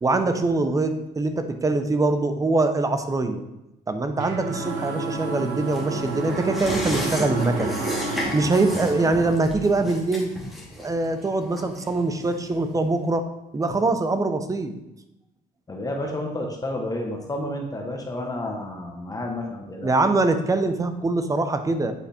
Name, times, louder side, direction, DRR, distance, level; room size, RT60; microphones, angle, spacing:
voice 1, 0.0-3.4 3.9-7.8 8.1-10.3 10.8-13.3 13.5-14.7 19.8-21.9, right 2 dB, 20° right, 8 dB, 0.8 m, -23 dB
sound 1, 4.2-8.3, right 6 dB, 85° right, 0.8 m, -33 dB
sound 2, 4.5-9.4, right 1 dB, 60° right, 3.1 m, -32 dB
sound 3, 5.7-12.7 13.1-13.2, left 1 dB, ahead, 2.3 m, -34 dB
voice 2, 15.7-19.9, left 1 dB, 20° left, 1 dB, 1.2 m, -30 dB
8.4 x 4.8 x 4.3 m, 0.92 s
cardioid pair, 110°, 17 cm